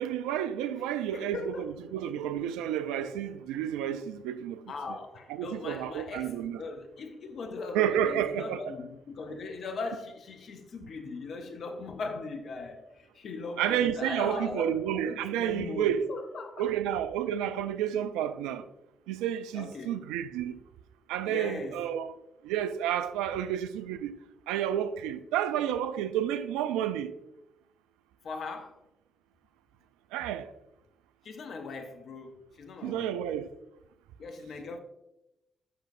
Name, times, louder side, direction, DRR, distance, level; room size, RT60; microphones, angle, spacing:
voice 1, 0.0-4.6 5.3-6.6 7.7-8.7 9.3-9.4 13.6-16.1 16.6-18.7 19.1-20.6 21.1-22.1 22.4-24.1 24.5-27.1 30.1-30.5 32.8-33.5, right 10 dB, 75° right, 0.3 m, -30 dB
voice 2, 1.1-1.7 4.7-16.7 19.5-20.0 21.3-21.9 28.2-28.8 31.2-33.2 34.2-34.8, left 3 dB, 60° left, 0.7 m, -39 dB
7.8 x 5.8 x 2.5 m
hypercardioid pair, 40°, 0 cm